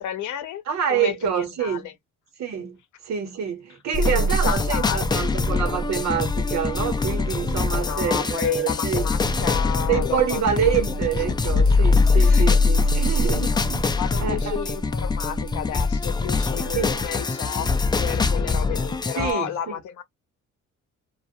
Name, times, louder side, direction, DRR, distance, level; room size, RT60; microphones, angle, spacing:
voice 1, 0.0-0.6 0.9-1.9 4.1-5.3 7.7-10.5 12.1-12.6 13.2-13.5 14.0-17.7 18.0-20.0, left 10 dB, 75° left, 0.7 m, -31 dB
voice 2, 0.7-1.9 2.4-9.1 9.9-14.6 16.7-16.9 19.2-19.8, right 8 dB, 60° right, 1.1 m, -27 dB
sound 1, 3.9-19.3, left 3 dB, 15° left, 0.3 m, -23 dB
2.4 x 2.1 x 2.6 m
cardioid pair, 90°, 30 cm